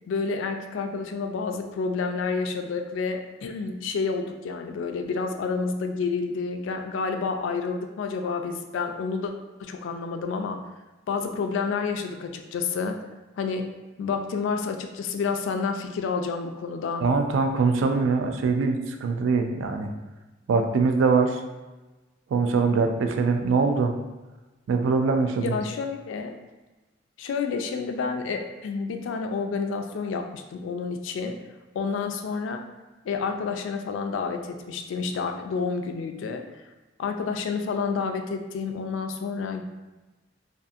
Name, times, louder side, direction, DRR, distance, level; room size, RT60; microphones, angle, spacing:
voice 1, 0.1-9.3 9.6-10.6 11.1-13.0 13.4-13.7 14.0-17.0 25.4-26.4 27.2-31.4 31.7-32.6 33.0-36.5 37.0-39.6, left 5 dB, 75° left, 5 dB, 0.3 m, -29 dB
voice 2, 17.0-19.9 20.5-21.4 22.3-23.9 24.7-25.6, right 4 dB, 80° right, 5 dB, 0.3 m, -23 dB
2.6 x 2.4 x 2.4 m, 1.1 s
head